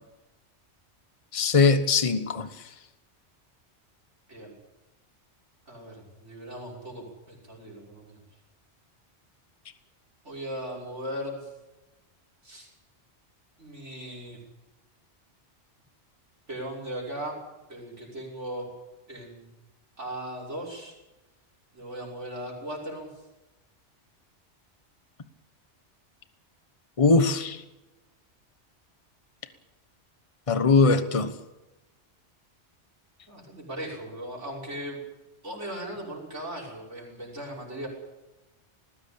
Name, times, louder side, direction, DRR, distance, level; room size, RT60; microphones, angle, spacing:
voice 1, 1.3-2.5 27.0-27.6 30.5-31.3, left 4 dB, 30° left, 1.2 m, -21 dB
voice 2, 5.7-8.2 10.2-11.5 12.4-12.7 13.6-14.4 16.5-17.4 17.7-18.7 19.1-19.4 20.0-20.9 21.7-23.1 33.3-35.0 35.4-37.9, right 1 dB, 85° right, 6.6 m, -38 dB
20.0 x 16.5 x 8.7 m
omnidirectional pair, 1.2 m